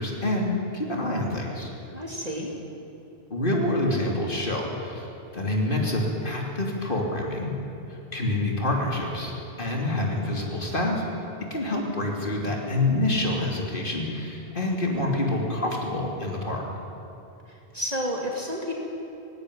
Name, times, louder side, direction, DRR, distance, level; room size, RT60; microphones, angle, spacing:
voice 1, 0.0-1.7 3.3-5.1 5.3-7.5 8.1-11.0 11.5-16.6, left 1 dB, 55° left, 0 dB, 3.2 m, -27 dB
voice 2, 1.9-2.5 17.5-18.7, equal, 40° right, -1 dB, 2.4 m, -31 dB
17.5 x 16.5 x 9.9 m, 2.9 s
omnidirectional pair, 1.1 m